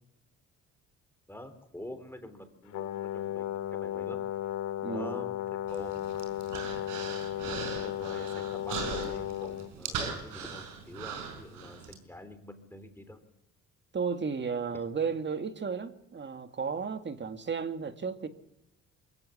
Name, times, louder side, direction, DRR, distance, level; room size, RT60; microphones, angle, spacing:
voice 1, 1.3-4.2 4.9-6.3 7.4-13.2, left 1 dB, 10° left, 3.6 m, -46 dB
Brass instrument, 2.7-9.7, left 11 dB, 80° left, 2.5 m, -35 dB
voice 2, 4.8-5.3 13.9-18.3, right 5 dB, 35° right, 2.1 m, -34 dB
Human voice, 5.7-11.9, right 5 dB, 85° right, 4.8 m, -39 dB
23.0 x 16.5 x 8.5 m
cardioid pair, 90°, 30 cm